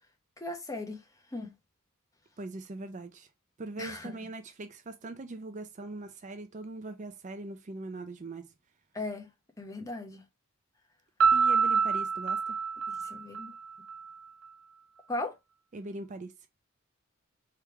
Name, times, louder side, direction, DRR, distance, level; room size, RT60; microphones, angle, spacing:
voice 1, 0.4-1.0 1.3-1.5 3.8-4.2 8.9-9.3 9.6-10.2 12.9-13.5 15.1-15.3, left 2 dB, 15° left, 0.8 m, -37 dB
voice 2, 2.4-3.3 3.6-8.5 11.3-12.6 15.7-16.3, right 2 dB, 35° right, 0.4 m, -41 dB
Piano, 11.2-14.0, right 5 dB, 80° right, 0.7 m, -26 dB
3.4 x 3.2 x 4.6 m
head